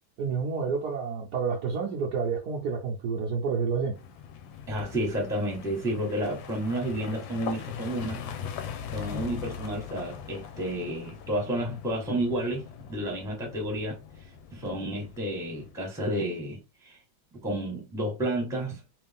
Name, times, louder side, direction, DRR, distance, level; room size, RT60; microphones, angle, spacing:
voice 1, 0.2-4.0, right 5 dB, 65° right, 1.1 m, -29 dB
sound 1, 3.9-15.8, left 8 dB, 70° left, 1.3 m, -41 dB
voice 2, 4.7-8.2 8.9-13.9 14.5-17.0 17.4-18.8, right 1 dB, ahead, 1.0 m, -31 dB
3.4 x 3.1 x 3.5 m
omnidirectional pair, 2.3 m